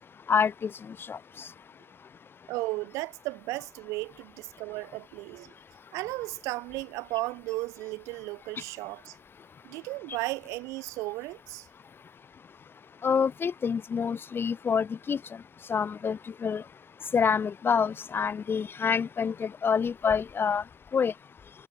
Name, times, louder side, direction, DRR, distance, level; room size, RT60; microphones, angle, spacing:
voice 1, 0.3-0.7 1.1-1.2 13.0-15.2 15.7-16.6 17.1-20.6 20.9-21.1, left 6 dB, 40° left, 3.9 m, -27 dB
voice 2, 2.5-5.5 5.9-9.2 9.6-11.7, right 21 dB, 70° right, 2.6 m, -35 dB
figure-of-eight pair, 45°, 5 cm